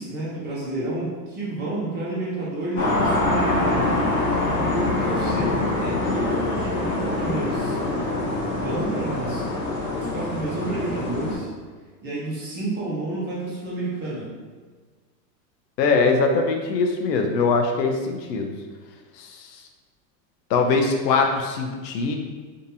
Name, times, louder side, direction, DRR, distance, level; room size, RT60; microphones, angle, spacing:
voice 1, 0.0-3.9 4.5-7.8 8.6-9.4 10.0-11.5 12.0-14.3, right 2 dB, 20° right, -6 dB, 0.8 m, -30 dB
sound 1, 2.8-11.4, left 2 dB, 20° left, 0.8 m, -24 dB
voice 2, 15.8-18.5 19.2-19.5 20.5-22.1, left 4 dB, 70° left, 3 dB, 0.7 m, -22 dB
3.8 x 2.7 x 2.7 m, 1.4 s
supercardioid pair, 150°, 50 cm